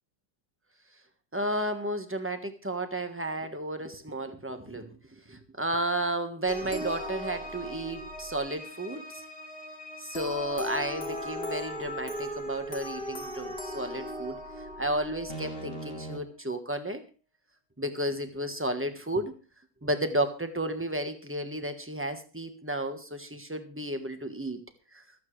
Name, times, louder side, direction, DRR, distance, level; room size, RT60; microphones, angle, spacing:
voice 1, 1.3-9.2 10.0-14.4 14.8-17.0 17.8-19.4 19.8-24.6 24.9-25.0, right 1 dB, 10° right, 7 dB, 1.2 m, -32 dB
sound 1, 6.4-16.2, left 1 dB, 30° left, 2.4 m, -38 dB
25.0 x 8.6 x 3.3 m, 0.36 s
omnidirectional pair, 1.9 m